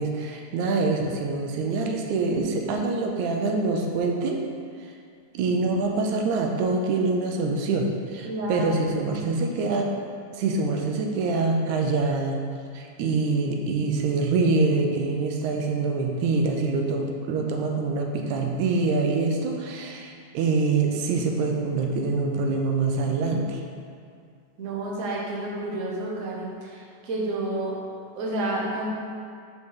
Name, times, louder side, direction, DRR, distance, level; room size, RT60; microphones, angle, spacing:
voice 1, 0.0-4.4 5.3-9.9 10.3-12.5 12.7-23.6, right 3 dB, 85° right, 2 dB, 2.1 m, -25 dB
voice 2, 8.3-8.7 24.6-27.7 28.1-28.9, right 2 dB, 65° right, -3 dB, 0.8 m, -30 dB
5.3 x 5.0 x 6.3 m, 2.3 s
omnidirectional pair, 3.3 m